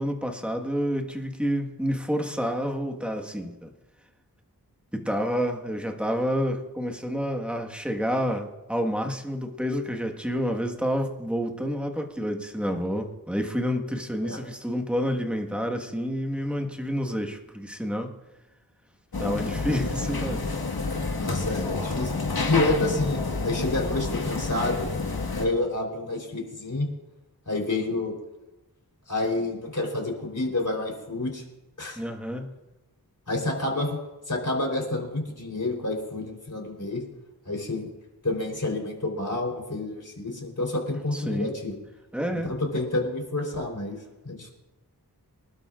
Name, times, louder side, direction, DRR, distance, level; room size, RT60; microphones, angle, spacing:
voice 1, 0.0-3.7 4.9-18.1 19.2-20.5 32.0-32.5 41.1-41.5 42.1-42.5, equal, 5° right, 2 dB, 1.5 m, -29 dB
sound 1, 19.1-25.5, left 3 dB, 75° left, 1.6 m, -29 dB
voice 2, 21.2-22.1 22.4-24.9 25.3-26.9 27.5-28.1 29.1-31.4 31.8-32.0 33.3-33.9 34.3-37.0 37.5-37.9 38.2-41.8 42.3-44.0 44.2-44.5, left 2 dB, 50° left, 0 dB, 3.8 m, -29 dB
25.0 x 12.0 x 2.5 m, 1.0 s
wide cardioid pair, 55°, 37 cm